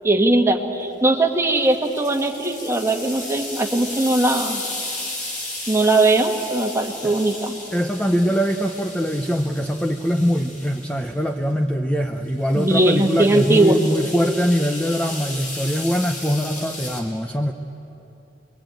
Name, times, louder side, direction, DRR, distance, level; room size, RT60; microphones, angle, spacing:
voice 1, 0.0-4.6 5.7-7.6 12.5-13.9, right 2 dB, 15° right, 2 dB, 1.7 m, -19 dB
sound 1, 1.6-11.1 12.3-17.0, left 2 dB, 45° left, 4.2 m, -34 dB
voice 2, 7.7-17.5, equal, 5° left, 4 dB, 0.7 m, -22 dB
27.0 x 22.0 x 9.1 m, 2.9 s
head